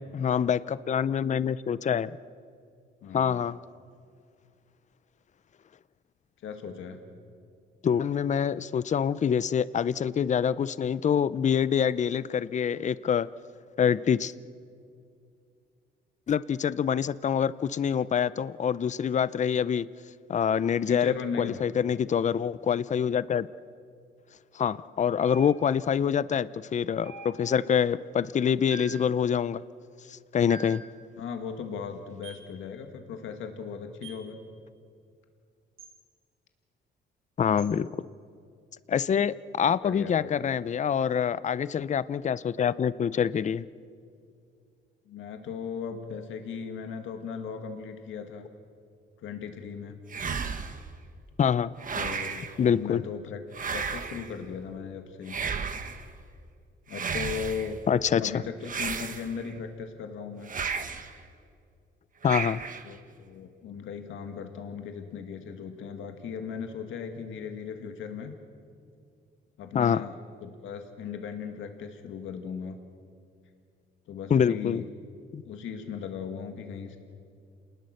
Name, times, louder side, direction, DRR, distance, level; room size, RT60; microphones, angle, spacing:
voice 1, 0.1-2.1 3.1-3.6 7.8-13.3 13.8-14.3 16.3-19.9 20.3-23.5 24.5-29.6 30.1-30.8 37.4-37.9 38.9-43.6 51.4-51.7 52.6-53.0 57.9-58.4 62.2-62.6 69.7-70.0 74.3-74.8 75.3-75.4, left 8 dB, 35° left, 17 dB, 0.6 m, -26 dB
voice 2, 3.0-3.4 6.4-7.0 20.9-21.6 31.2-34.4 39.6-40.5 45.1-48.5 49.2-50.0 51.9-53.4 53.7-55.4 56.9-57.8 58.2-60.5 62.8-68.3 69.6-72.8 74.1-74.8 75.5-77.0, left 6 dB, 80° left, 5 dB, 2.0 m, -37 dB
sound 1, 25.2-25.9 27.0-27.7 28.7-29.1 30.5-30.9 32.2-32.5 34.0-34.3 35.8-36.0 37.6-37.8, right 4 dB, 80° right, 6.2 m, -45 dB
sound 2, 50.1-50.9 51.8-52.6 53.5-54.3 55.3-56.1 56.9-57.7 58.6-59.5 60.5-61.1 62.2-62.9, right 5 dB, 40° right, 1.5 m, -33 dB
28.0 x 20.0 x 6.6 m, 2.3 s
cardioid pair, 90°, 20 cm